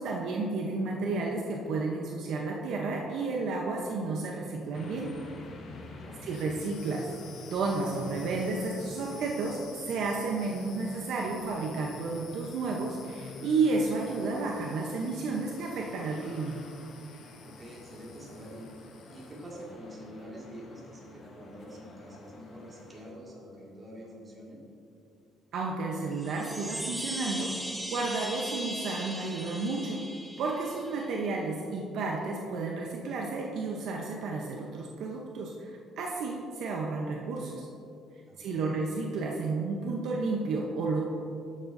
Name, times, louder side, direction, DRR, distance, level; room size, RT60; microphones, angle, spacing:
voice 1, 0.0-5.2 6.2-7.1 7.5-16.6 25.5-27.5 27.9-30.0 30.4-37.7 38.4-41.0, right 3 dB, 65° right, -1 dB, 0.7 m, -32 dB
sound 1, 4.7-23.1, left 2 dB, 50° left, 1.1 m, -49 dB
sound 2, 6.2-19.7, left 8 dB, 80° left, 0.9 m, -52 dB
voice 2, 17.4-18.7 19.1-24.6 38.3-38.8, equal, 25° right, -4 dB, 2.0 m, -46 dB
sound 3, 26.1-31.2, equal, 5° right, 0.5 m, -38 dB
11.5 x 7.4 x 2.6 m, 2.6 s
cardioid pair, 135°, 0 cm